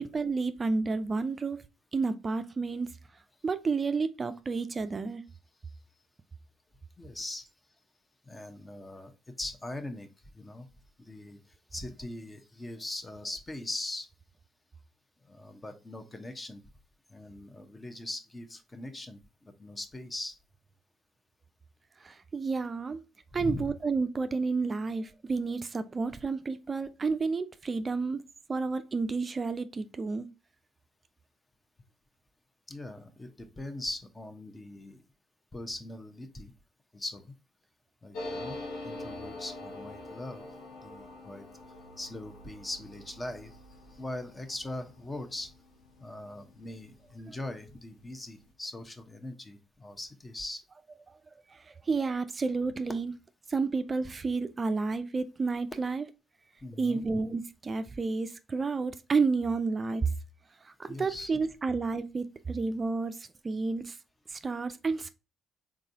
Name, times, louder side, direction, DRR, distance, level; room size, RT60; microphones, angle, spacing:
voice 1, 0.0-1.6 1.9-2.9 3.4-5.2 22.0-23.0 23.3-28.2 28.5-30.3 47.3-47.4 51.5-53.1 53.5-56.1 56.8-60.1 60.6-64.0 64.3-65.1, right 4 dB, 35° right, 0.4 m, -31 dB
voice 2, 7.0-7.5 8.3-9.1 9.4-10.1 10.3-10.7 11.0-11.4 11.7-14.1 15.3-16.6 17.1-20.3 23.3-23.7 32.7-35.0 35.5-36.5 36.9-37.2 38.0-40.5 40.8-41.4 42.0-43.6 43.9-45.5 46.0-50.6 56.6-57.0 60.9-61.3, left 2 dB, 25° left, 0.9 m, -40 dB
sound 1, 38.1-47.3 47.6-47.7 47.9-48.5, left 2 dB, 75° left, 1.0 m, -44 dB
3.8 x 3.6 x 2.7 m
hypercardioid pair, 45°, 0 cm